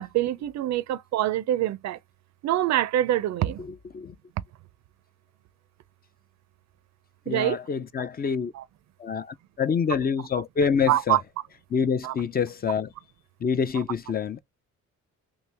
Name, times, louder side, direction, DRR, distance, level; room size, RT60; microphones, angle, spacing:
voice 1, 0.0-2.0 2.4-3.6 7.3-7.6 8.5-8.6 10.9-11.2 12.0-12.1, right 13 dB, 65° right, 0.4 m, -25 dB
voice 2, 3.6-4.2 7.3-8.5 9.0-11.2 11.7-12.9 13.4-14.4, left 6 dB, 30° left, 0.4 m, -26 dB
3.2 x 2.9 x 3.3 m
cardioid pair, 90°, 30 cm